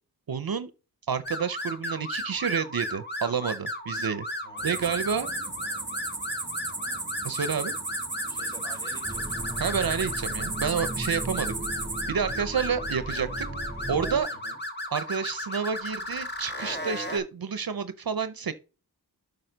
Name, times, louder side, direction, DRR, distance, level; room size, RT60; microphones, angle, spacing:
voice 1, 0.3-0.7 1.1-4.3 4.6-5.3 7.2-7.8 9.6-11.5 12.1-13.5 13.9-14.3 14.9-18.5, right 6 dB, 65° right, 0.6 m, -29 dB
sound 1, 1.2-17.2, left 1 dB, 25° left, 1.5 m, -35 dB
sound 2, 4.6-12.0, right 3 dB, 30° right, 1.2 m, -36 dB
voice 2, 8.3-9.5 14.3-14.6, right 1 dB, 10° left, 3.9 m, -48 dB
sound 3, 9.0-14.2, right 2 dB, 5° right, 3.0 m, -37 dB
7.8 x 5.2 x 3.9 m
wide cardioid pair, 70°, 38 cm